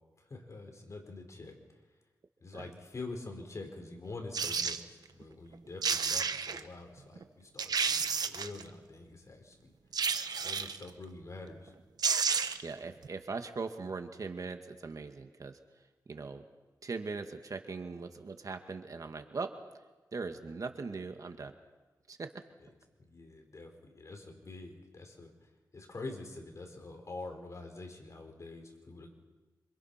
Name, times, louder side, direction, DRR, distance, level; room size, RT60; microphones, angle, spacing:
voice 1, 0.2-1.6 2.4-9.7 10.4-11.7 23.0-29.1, left 3 dB, 45° left, 4 dB, 5.3 m, -46 dB
sound 1, 4.3-4.8 5.5-5.6 5.8-6.6 7.2-7.3 7.6-8.6 9.9-10.8 11.7-11.8 12.0-12.7 13.0-13.1, right 5 dB, 70° right, 1.2 m, -31 dB
voice 2, 12.6-15.6 16.1-16.4 16.8-19.5 20.1-21.5 22.1-22.3, right 4 dB, 55° right, 6 dB, 2.0 m, -40 dB
27.0 x 26.5 x 6.0 m, 1.3 s
cardioid pair, 80°, 7 cm